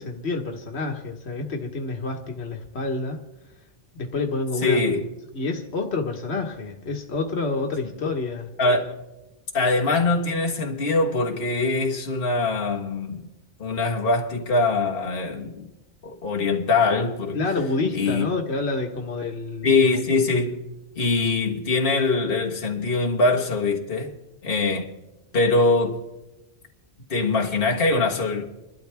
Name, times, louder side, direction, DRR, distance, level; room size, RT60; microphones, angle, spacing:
voice 1, 0.0-3.2 3.9-4.8 5.3-8.5 17.3-19.8, left 3 dB, 90° left, 1.6 m, -28 dB
voice 2, 4.6-5.1 8.6-9.0 9.5-13.3 13.6-15.7 16.0-17.4 17.9-18.3 19.6-20.7 20.9-24.2 24.4-24.9 25.3-26.1 27.1-28.5, left 3 dB, 60° left, 1.7 m, -22 dB
29.0 x 12.0 x 3.4 m
omnidirectional pair, 1.1 m